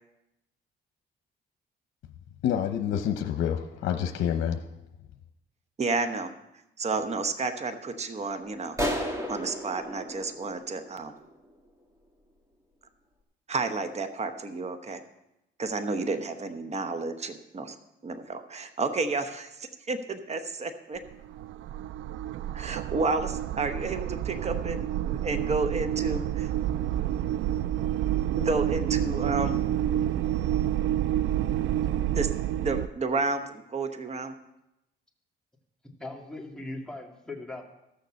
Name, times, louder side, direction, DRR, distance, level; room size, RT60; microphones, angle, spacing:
voice 1, 2.4-4.7, left 9 dB, 75° left, 6 dB, 0.9 m, -28 dB
voice 2, 5.8-6.3 6.8-8.8 9.3-11.1 13.5-15.0 15.6-17.8 18.0-21.0 22.5-26.5 28.3-29.6 32.1-32.3 32.6-34.3, right 3 dB, 35° right, 8 dB, 1.1 m, -31 dB
sound 1, 8.8-11.4, equal, 15° right, 2.2 m, -33 dB
sound 2, 21.0-32.9, right 12 dB, 75° right, 0.4 m, -29 dB
voice 3, 36.0-37.6, left 2 dB, 5° left, 0 dB, 2.3 m, -39 dB
14.0 x 6.9 x 6.4 m, 0.88 s
cardioid pair, 90°, 20 cm